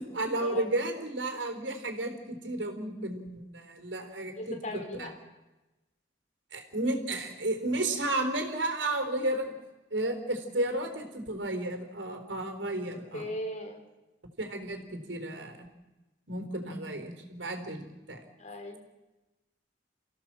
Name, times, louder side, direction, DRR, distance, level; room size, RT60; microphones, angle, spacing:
voice 1, 0.0-4.6 5.0-5.1 6.5-9.5 9.9-13.3 14.4-15.7 16.3-18.2, right 1 dB, 90° right, 5 dB, 4.1 m, -33 dB
voice 2, 4.3-5.1 13.1-13.8 18.4-18.8, left 1 dB, 40° left, 4 dB, 3.8 m, -38 dB
30.0 x 16.0 x 7.6 m, 1.1 s
head